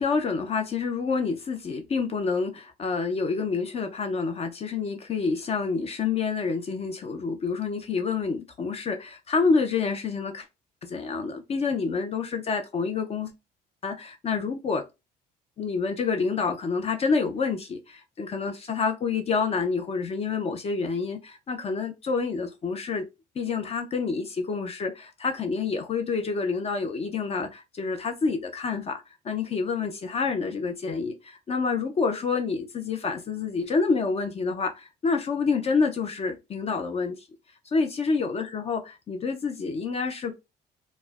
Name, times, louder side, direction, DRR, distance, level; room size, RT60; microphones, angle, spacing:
voice 1, 0.0-10.5 10.8-13.3 13.8-14.8 15.6-23.1 23.4-37.3 37.7-40.4, left 4 dB, 35° left, 0.5 m, -28 dB
4.1 x 2.1 x 2.3 m
cardioid pair, 110°, 17 cm